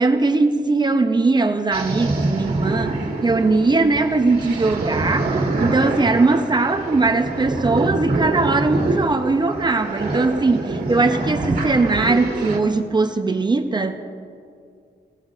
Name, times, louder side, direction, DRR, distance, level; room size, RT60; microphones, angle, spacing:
voice 1, 0.0-14.0, right 3 dB, 25° right, 7 dB, 0.6 m, -20 dB
sound 1, 1.7-12.6, right 2 dB, 60° right, 1.8 m, -25 dB
19.0 x 13.0 x 2.5 m, 2.3 s
wide cardioid pair, 140°, 18 cm